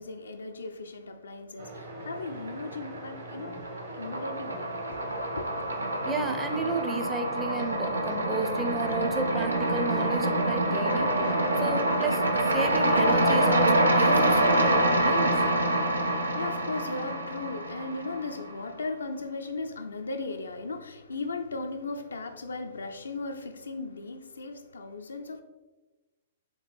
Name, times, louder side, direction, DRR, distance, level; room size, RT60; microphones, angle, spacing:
voice 1, 0.0-3.6 3.9-5.0 5.3-5.5 15.8-25.4, left 3 dB, 75° left, 0.4 m, -37 dB
sound 1, 1.6-6.8, right 2 dB, 55° right, 1.2 m, -43 dB
sound 2, 2.3-3.0 3.3-18.5, right 1 dB, 85° right, 0.5 m, -26 dB
voice 2, 6.0-15.4, right 3 dB, 15° right, 0.5 m, -33 dB
4.4 x 3.4 x 3.2 m
figure-of-eight pair, 115°, 0 cm